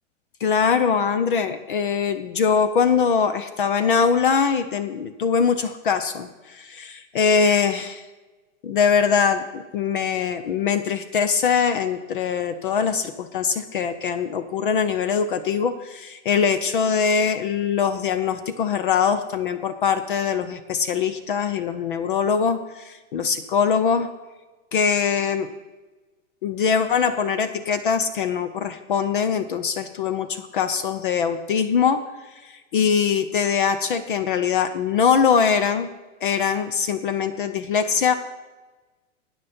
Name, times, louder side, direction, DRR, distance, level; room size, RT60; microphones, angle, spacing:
voice 1, 0.4-8.0 8.6-24.1 24.7-25.5 26.4-32.0 32.4-35.9 36.2-38.1, left 6 dB, 45° left, 11 dB, 0.6 m, -22 dB
12.5 x 9.4 x 4.3 m, 1.2 s
supercardioid pair, 180°, 37 cm